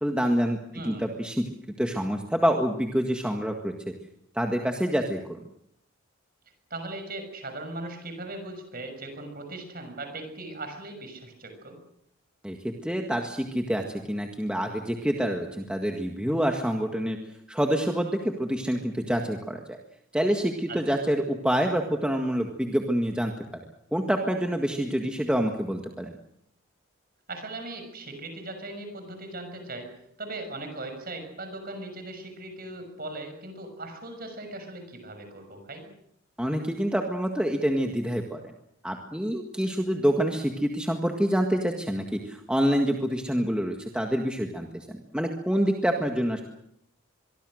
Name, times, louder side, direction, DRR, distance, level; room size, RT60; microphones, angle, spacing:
voice 1, 0.0-0.6 0.8-1.5 1.8-3.7 4.3-5.4 12.4-17.2 17.5-19.8 20.1-23.3 23.9-26.1 36.4-38.4 38.8-46.4, equal, 5° right, 2 dB, 1.7 m, -27 dB
voice 2, 0.7-1.1 6.7-11.8 20.7-20.8 27.3-29.9 30.2-35.9, right 2 dB, 40° right, 6 dB, 6.3 m, -39 dB
24.0 x 24.0 x 6.5 m, 0.74 s
head